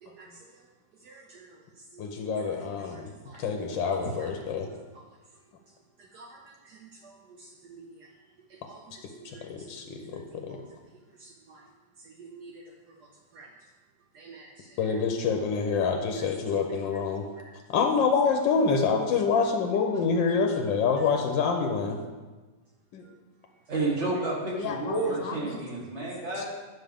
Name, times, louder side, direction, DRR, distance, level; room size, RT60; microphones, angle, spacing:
voice 1, 0.0-0.6 1.0-2.0 2.3-3.5 4.0-4.5 4.9-5.0 5.7-8.1 8.5-10.8 11.1-11.7 12.0-13.7 14.1-15.0 16.2-17.6 23.0-23.2, right 3 dB, 70° right, 2 dB, 1.1 m, -49 dB
voice 2, 2.0-3.1 3.4-4.7 9.5-10.6 14.8-17.3 17.7-22.0 22.9-23.1 24.5-25.4 26.4-26.5, left 5 dB, 85° left, 3 dB, 1.4 m, -27 dB
voice 3, 23.7-26.5, right 2 dB, 40° right, -4 dB, 2.0 m, -30 dB
9.4 x 6.1 x 3.5 m, 1.3 s
omnidirectional pair, 2.0 m